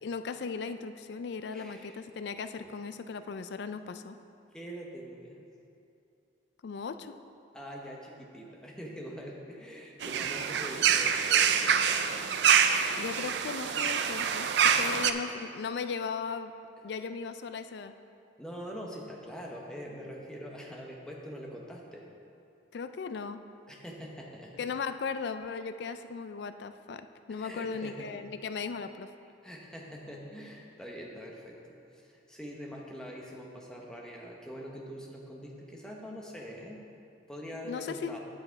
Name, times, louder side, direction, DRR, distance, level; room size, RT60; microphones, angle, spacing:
voice 1, 0.0-4.2 6.6-7.2 13.0-16.5 16.8-17.9 22.7-23.4 24.6-29.1 37.6-38.2, left 5 dB, 65° left, 10 dB, 0.4 m, -37 dB
voice 2, 1.5-2.0 2.6-2.7 4.5-5.4 7.5-12.1 14.8-15.0 18.4-22.0 23.7-24.7 27.3-28.1 29.4-31.6 31.9-36.8 37.3-38.2, equal, 5° left, -2 dB, 0.9 m, -43 dB
sound 1, 10.0-15.1, right 7 dB, 70° right, 0.4 m, -26 dB
8.8 x 7.7 x 4.6 m, 2.6 s
head